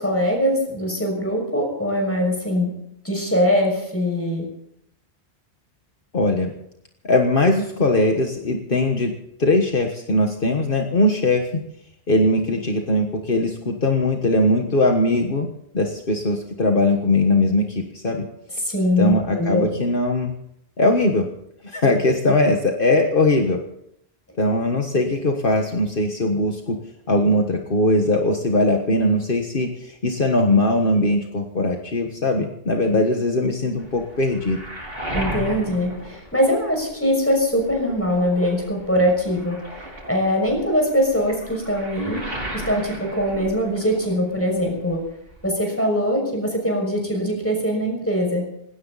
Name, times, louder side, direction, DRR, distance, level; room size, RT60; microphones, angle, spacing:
voice 1, 0.0-2.7 3.0-4.5 18.6-19.7 35.1-39.6 40.1-42.2 42.5-45.0 45.4-48.4, equal, 15° left, 1 dB, 6.2 m, -22 dB
voice 2, 6.1-6.5 7.0-9.1 9.4-11.6 12.1-15.5 15.7-18.2 19.0-20.3 20.8-21.2 21.6-23.6 24.4-26.8 27.1-34.6, left 2 dB, 60° left, 2 dB, 1.7 m, -20 dB
Waves surf, 33.8-37.0 37.3-44.3 44.5-45.5, right 1 dB, 70° right, 4.7 m, -35 dB
19.5 x 17.5 x 4.1 m, 0.74 s
omnidirectional pair, 1.0 m